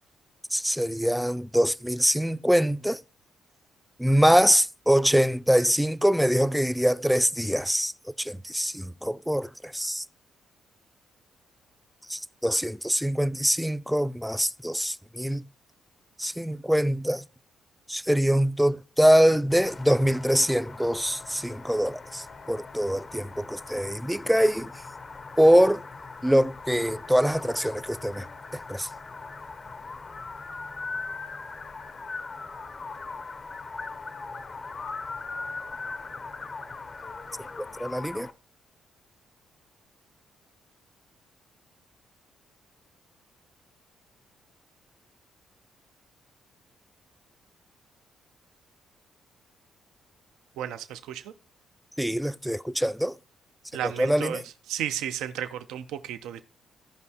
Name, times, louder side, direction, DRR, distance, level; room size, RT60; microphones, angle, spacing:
voice 1, 0.5-3.0 4.0-7.9 8.2-10.0 12.1-15.4 16.2-17.2 17.9-24.7 25.4-25.8 26.2-28.3 28.7-28.9 37.6-38.3 52.0-53.2 53.8-54.4, equal, ahead, 0.3 m, -24 dB
sound 1, 19.5-38.3, left 4 dB, 35° left, 0.6 m, -40 dB
voice 2, 50.6-51.3 53.7-54.4 54.7-56.4, right 11 dB, 90° right, 0.5 m, -33 dB
15.5 x 5.4 x 2.8 m
cardioid pair, 90°, 0 cm